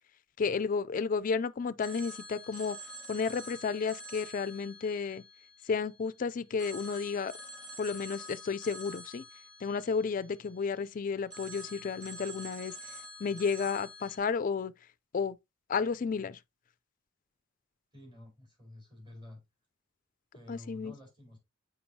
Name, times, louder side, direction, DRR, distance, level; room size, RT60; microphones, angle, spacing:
voice 1, 0.4-2.8 3.1-5.2 5.7-7.3 7.8-9.2 9.6-12.7 13.2-14.7 15.1-15.4 15.7-16.4 20.5-20.9, left 5 dB, 40° left, 0.4 m, -32 dB
Telephone, 1.8-6.1 6.6-10.8 11.3-14.2, equal, 5° left, 1.6 m, -47 dB
voice 2, 17.9-19.4 20.3-21.4, left 1 dB, 20° right, 4.1 m, -50 dB
7.0 x 5.1 x 2.7 m
head